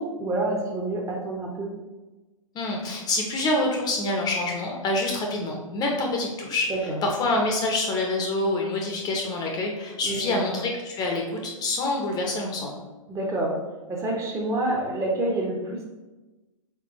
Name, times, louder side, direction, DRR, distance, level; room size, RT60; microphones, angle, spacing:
voice 1, 0.0-1.8 6.7-7.0 10.0-10.4 13.1-13.6 13.9-15.8, right 2 dB, 15° right, -1 dB, 0.7 m, -28 dB
voice 2, 2.5-6.7 7.0-12.8, left 2 dB, 20° left, 1 dB, 0.6 m, -26 dB
4.4 x 3.9 x 3.0 m, 1.2 s
hypercardioid pair, 120°, 18 cm